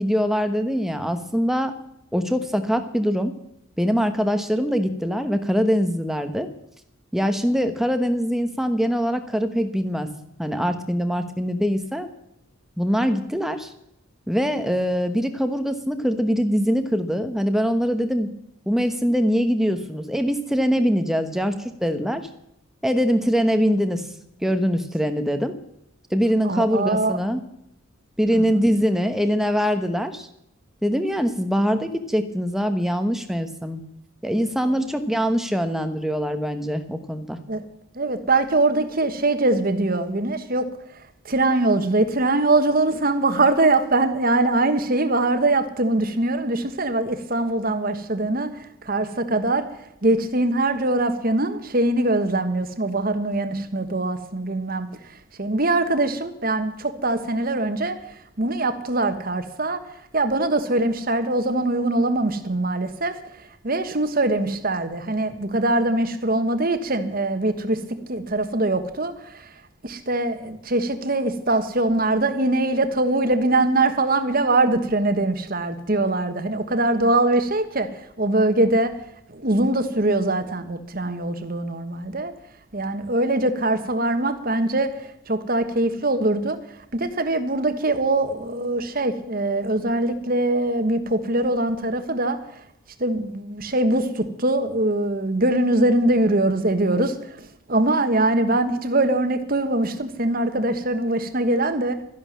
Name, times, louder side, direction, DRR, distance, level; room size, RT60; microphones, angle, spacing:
voice 1, 0.0-1.7 2.1-3.4 3.8-6.5 7.1-10.1 10.4-12.1 12.8-13.7 14.3-18.3 18.7-22.3 22.8-24.1 24.4-25.5 26.1-27.4 28.2-30.3 30.8-33.8 34.2-37.4, equal, ahead, 7 dB, 1.0 m, -23 dB
voice 2, 26.4-27.2 28.3-28.6 34.7-34.9 37.5-37.6 37.9-40.7 41.2-49.6 50.0-54.9 55.4-59.8 60.1-67.8 68.1-69.5 69.8-78.9 79.3-82.3 82.7-86.6 86.9-92.4 93.0-102.0, right 2 dB, 40° right, 9 dB, 1.4 m, -22 dB
13.5 x 11.0 x 7.4 m, 0.78 s
head